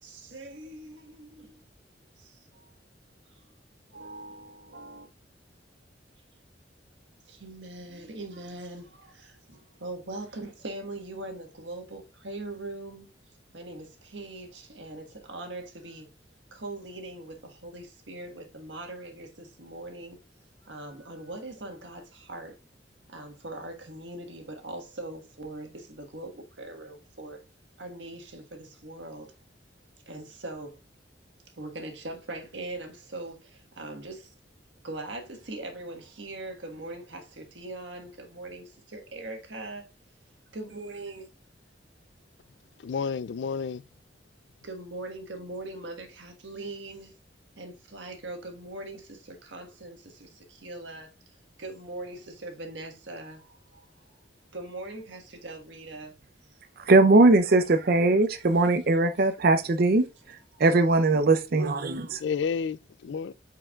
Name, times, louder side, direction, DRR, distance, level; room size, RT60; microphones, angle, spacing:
voice 1, 0.0-1.6 2.2-2.7 3.3-3.4 3.9-5.1 7.3-13.1 13.5-16.1 16.5-20.2 20.6-22.6 23.1-27.4 27.8-29.3 30.1-30.8 31.5-34.3 34.8-39.9 40.5-41.3 44.6-47.1 47.6-54.2 54.5-56.2 60.5-60.6, right 2 dB, 80° right, 1.5 m, -41 dB
voice 2, 42.8-43.8 62.2-63.3, left 6 dB, 70° left, 0.4 m, -30 dB
voice 3, 56.8-62.2, right 2 dB, 55° right, 0.6 m, -21 dB
8.8 x 4.6 x 2.4 m
head